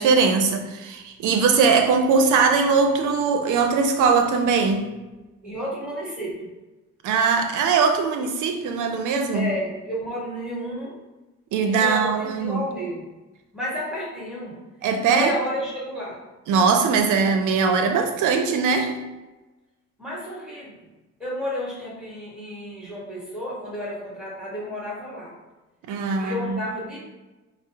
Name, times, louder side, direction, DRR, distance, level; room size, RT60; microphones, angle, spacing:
voice 1, 0.0-4.9 7.0-9.5 11.5-12.6 14.8-15.4 16.5-19.0 25.9-26.6, right 5 dB, 80° right, 5 dB, 0.6 m, -21 dB
voice 2, 5.4-6.5 9.3-11.0 11.6-13.0 13.5-14.6 15.1-16.2 20.0-20.9 21.2-25.3 26.2-27.0, equal, 5° right, -7 dB, 1.5 m, -31 dB
4.6 x 2.0 x 2.8 m, 1.1 s
cardioid pair, 90°, 30 cm